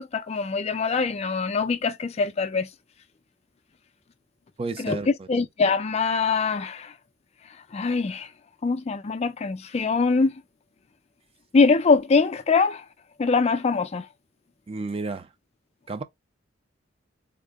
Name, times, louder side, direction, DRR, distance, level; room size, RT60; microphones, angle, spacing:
voice 1, 0.0-2.7 4.8-6.9 7.7-8.3 8.6-10.3 11.5-12.8 13.2-14.1, left 4 dB, 35° left, 0.4 m, -23 dB
voice 2, 4.6-5.1 14.7-15.3 15.9-16.0, right 3 dB, 30° right, 0.4 m, -31 dB
3.6 x 2.1 x 3.3 m
head